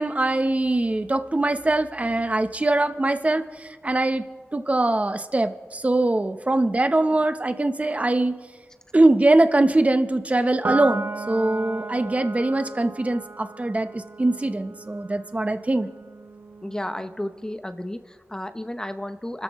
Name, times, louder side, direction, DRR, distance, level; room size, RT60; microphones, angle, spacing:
voice 1, 0.0-4.2 4.5-8.4 8.9-15.9, right 2 dB, 30° right, 8 dB, 0.9 m, -22 dB
Piano, 10.6-17.3, right 3 dB, 60° right, 0.5 m, -35 dB
voice 2, 16.6-19.4, left 1 dB, 15° left, 9 dB, 0.8 m, -32 dB
29.0 x 13.5 x 3.2 m, 1.5 s
wide cardioid pair, 75°, 5 cm